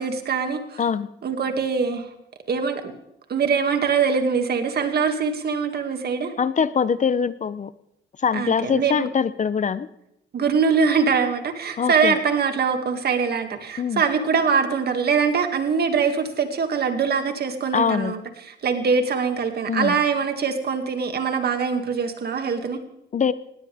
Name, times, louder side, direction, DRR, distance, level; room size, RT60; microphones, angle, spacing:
voice 1, 0.0-0.8 1.2-2.1 2.5-2.9 3.3-6.3 8.3-9.1 10.3-22.8, right 5 dB, 55° right, 6 dB, 2.3 m, -23 dB
voice 2, 6.4-7.7 8.2-9.9 11.8-12.1 13.8-14.0 17.7-18.1 19.7-20.0 23.1-23.3, left 6 dB, 40° left, 16 dB, 0.7 m, -23 dB
19.5 x 17.0 x 3.6 m, 0.83 s
cardioid pair, 90°, 20 cm